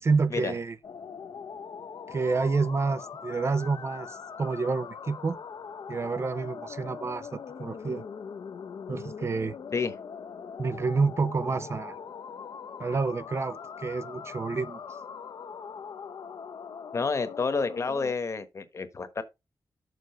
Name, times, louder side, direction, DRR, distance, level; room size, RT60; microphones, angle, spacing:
voice 1, 0.0-0.8 2.1-5.4 5.9-8.0 8.9-9.6 10.6-12.0 12.8-14.8, right 4 dB, 40° right, 0.4 m, -28 dB
sound 1, 0.8-18.1, left 6 dB, 70° left, 0.7 m, -41 dB
voice 2, 16.9-19.2, left 4 dB, 45° left, 1.1 m, -29 dB
6.8 x 4.9 x 5.5 m
wide cardioid pair, 140°, 7 cm